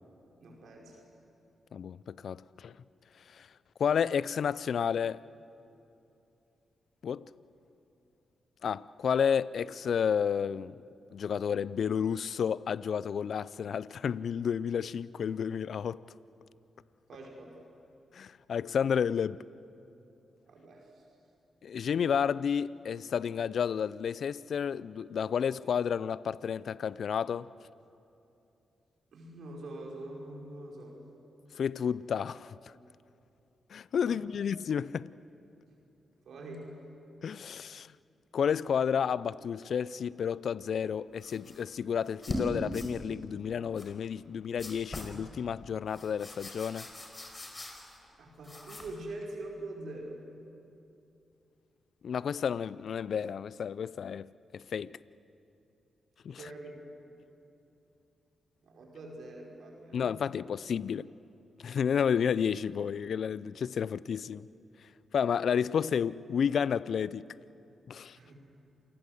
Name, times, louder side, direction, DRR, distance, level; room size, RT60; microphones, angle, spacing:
voice 1, 0.4-1.0 17.1-17.6 20.5-21.0 29.1-31.0 34.1-34.4 36.2-36.7 48.2-50.2 56.3-56.8 57.0-57.2 58.6-60.4 68.1-68.4, right 2 dB, 70° right, 5.3 m, -44 dB
voice 2, 1.7-2.7 3.3-3.5 3.8-5.2 7.0-7.3 8.6-10.8 11.1-16.0 18.1-19.4 21.6-27.5 31.5-32.5 33.7-35.1 37.2-37.9 38.3-46.9 52.0-55.0 56.2-56.4 59.9-61.1 61.6-64.5 65.1-67.3 67.9-68.2, left 7 dB, 65° left, 0.5 m, -31 dB
sound 1, 41.2-41.6 42.1-42.5 42.7-42.9 43.8-43.9 44.6-45.2 45.9-48.1 48.4-49.0, left 1 dB, 30° left, 4.9 m, -40 dB
27.5 x 19.0 x 8.0 m
supercardioid pair, 45°, 0 cm